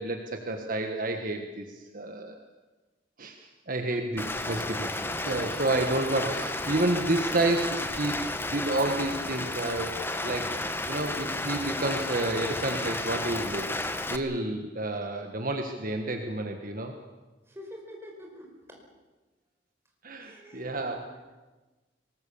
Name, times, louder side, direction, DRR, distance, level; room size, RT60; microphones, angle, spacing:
voice 1, 0.0-2.3 3.2-4.9 5.2-13.7 14.1-16.9 20.0-21.2, right 2 dB, 50° right, 5 dB, 1.6 m, -30 dB
Rain, 4.2-14.2, left 2 dB, 15° left, 1.3 m, -32 dB
voice 2, 17.5-18.8 20.2-20.7 21.0-21.1, equal, 15° right, 1 dB, 5.2 m, -46 dB
24.0 x 19.5 x 7.2 m, 1.2 s
head